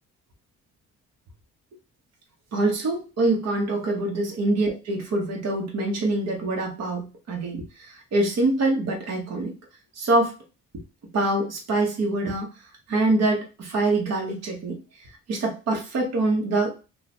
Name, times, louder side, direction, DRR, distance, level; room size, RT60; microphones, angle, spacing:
voice 1, 2.5-9.5 10.0-10.4 11.1-12.5 12.9-14.8 15.3-16.7, right 2 dB, 60° right, 0 dB, 1.2 m, -25 dB
3.0 x 2.4 x 4.2 m, 0.31 s
cardioid pair, 90°, 30 cm